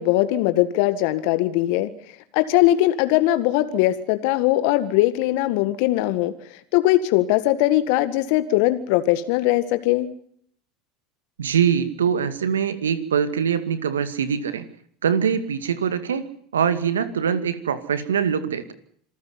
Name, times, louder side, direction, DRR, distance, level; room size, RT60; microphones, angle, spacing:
voice 1, 0.0-1.9 2.3-10.1, left 15 dB, 65° left, 12 dB, 1.8 m, -20 dB
voice 2, 11.4-14.7 15.0-18.7, right 7 dB, 85° right, 13 dB, 2.1 m, -23 dB
27.0 x 14.5 x 9.7 m, 0.64 s
hypercardioid pair, 80°, 0 cm